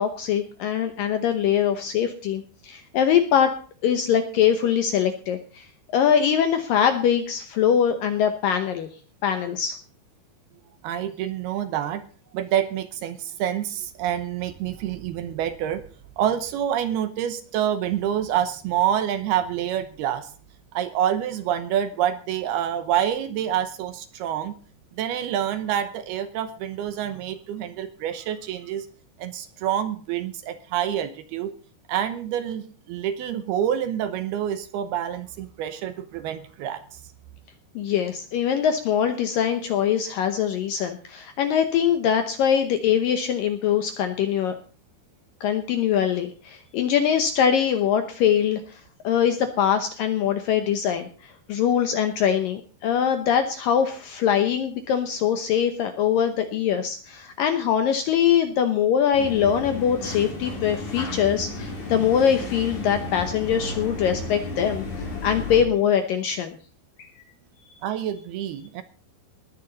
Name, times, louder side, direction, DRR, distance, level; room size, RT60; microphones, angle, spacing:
voice 1, 0.0-3.5 3.8-5.7 5.9-8.9 9.2-9.8 37.8-44.6 45.4-66.6 67.0-67.1, left 8 dB, 75° left, 8 dB, 2.1 m, -23 dB
voice 2, 10.8-12.1 12.3-15.8 16.2-20.3 20.7-24.5 25.0-28.9 29.2-31.5 31.9-36.8 67.8-68.8, right 10 dB, 75° right, 11 dB, 2.6 m, -27 dB
sound 1, 59.1-65.6, left 2 dB, 45° left, 5.5 m, -33 dB
20.0 x 9.7 x 4.0 m, 0.40 s
omnidirectional pair, 5.1 m